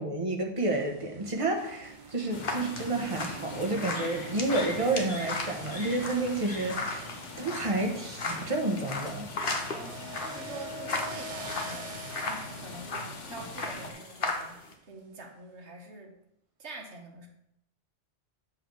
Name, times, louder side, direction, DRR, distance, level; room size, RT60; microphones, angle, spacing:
voice 1, 0.0-7.1 7.4-9.3, right 2 dB, 30° right, 1 dB, 1.1 m, -30 dB
sound 1, 0.6-14.7, right 2 dB, 45° right, 0.8 m, -46 dB
sound 2, 1.6-14.7, left 3 dB, 50° left, 1.2 m, -37 dB
sound 3, 2.3-13.9, left 3 dB, 75° left, 1.4 m, -44 dB
voice 2, 9.7-14.6 14.9-16.1 16.6-17.3, right 2 dB, 65° right, 2 dB, 1.5 m, -45 dB
7.9 x 3.4 x 6.2 m, 0.77 s
omnidirectional pair, 1.2 m